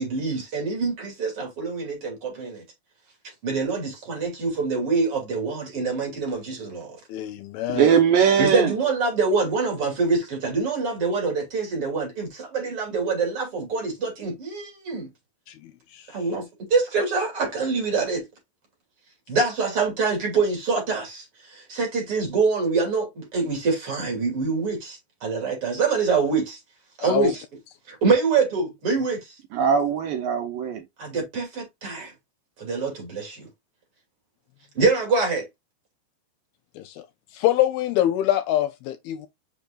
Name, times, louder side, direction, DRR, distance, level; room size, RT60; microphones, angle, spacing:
voice 1, 0.0-2.6 3.4-7.0 8.4-15.1 16.1-18.3 19.3-21.2 21.5-26.6 27.0-27.4 27.9-29.3 31.0-32.1 32.6-33.5 34.7-35.5, right 4 dB, 35° right, 3.2 m, -25 dB
voice 2, 7.1-7.9 15.5-15.6 15.9-16.1 27.0-27.3 36.8-37.1 37.3-39.3, left 13 dB, 80° left, 2.3 m, -24 dB
voice 3, 7.7-8.7 29.5-30.8, right 7 dB, 70° right, 2.2 m, -20 dB
6.8 x 5.8 x 2.4 m
omnidirectional pair, 4.9 m